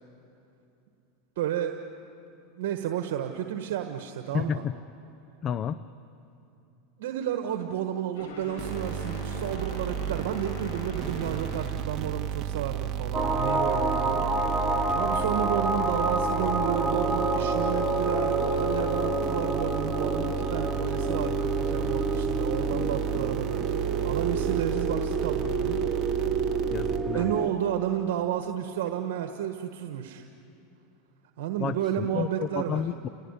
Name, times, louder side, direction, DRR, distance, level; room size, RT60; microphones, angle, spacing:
voice 1, 1.4-1.8 2.6-4.6 7.0-25.8 27.1-30.3 31.4-32.8, right 10 dB, 75° right, 5 dB, 1.4 m, -32 dB
voice 2, 4.3-4.8 5.4-5.8 26.7-27.5 31.6-33.1, left 8 dB, 35° left, 14 dB, 0.6 m, -31 dB
sound 1, 8.1-11.8, left 4 dB, 80° left, 6.1 m, -41 dB
sound 2, 8.6-27.4, right 10 dB, 40° right, 1.7 m, -33 dB
sound 3, 13.1-27.5, right 2 dB, 10° right, 2.5 m, -28 dB
30.0 x 18.5 x 9.9 m, 2.7 s
supercardioid pair, 120°, 0 cm